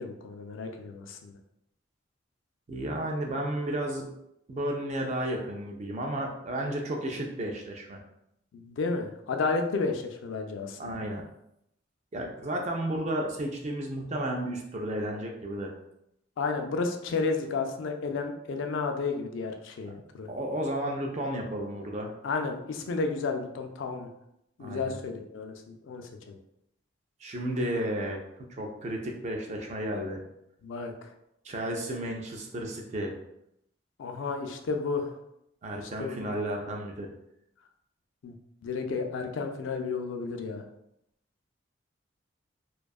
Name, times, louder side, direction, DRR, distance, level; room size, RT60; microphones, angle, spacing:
voice 1, 0.0-1.4 8.5-11.0 16.4-20.3 22.2-24.1 24.6-26.4 30.6-31.1 34.0-35.1 36.0-36.3 38.2-38.4 38.6-40.6, left 4 dB, 75° left, 5 dB, 0.3 m, -32 dB
voice 2, 2.7-4.1 4.5-8.0 10.8-11.2 12.1-15.7 20.2-22.1 24.6-25.0 27.2-30.2 31.4-33.1 35.6-37.1, right 1 dB, 35° right, 1 dB, 0.4 m, -33 dB
2.6 x 2.3 x 2.3 m, 0.80 s
head